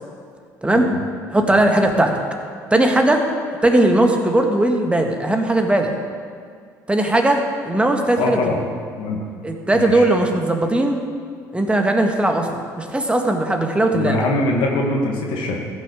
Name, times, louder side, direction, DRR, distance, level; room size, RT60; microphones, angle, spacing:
voice 1, 1.3-2.2 2.7-3.2 3.6-5.9 6.9-8.6 9.4-11.0 11.5-12.5 12.8-14.3, right 1 dB, 10° right, 3 dB, 1.6 m, -18 dB
voice 2, 8.2-8.6 9.0-9.3 9.7-10.1 13.9-15.6, left 2 dB, 65° left, -1 dB, 1.8 m, -22 dB
15.0 x 6.3 x 6.3 m, 2.1 s
hypercardioid pair, 60°, 9 cm